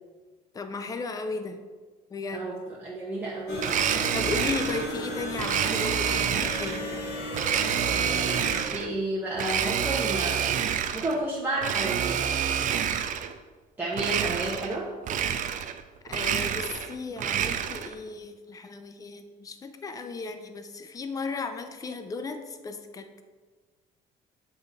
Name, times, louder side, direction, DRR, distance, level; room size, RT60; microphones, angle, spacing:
voice 1, 0.5-1.6 2.1-2.5 4.1-6.8 16.0-23.2, left 4 dB, 20° left, 8 dB, 0.5 m, -35 dB
voice 2, 2.3-4.1 7.9-10.5 10.9-12.3 13.8-14.9, right 2 dB, 10° right, -7 dB, 1.1 m, -32 dB
sound 1, 3.5-8.6, equal, 75° left, 1.4 m, -34 dB
Domestic sounds home sounds, 3.6-4.9 5.4-6.8 7.3-8.9 9.3-11.2 11.6-13.3 13.9-14.8 15.0-15.8 16.1-17.9, right 9 dB, 50° right, 0.4 m, -28 dB
7.0 x 3.8 x 4.1 m, 1.4 s
cardioid pair, 110°, 17 cm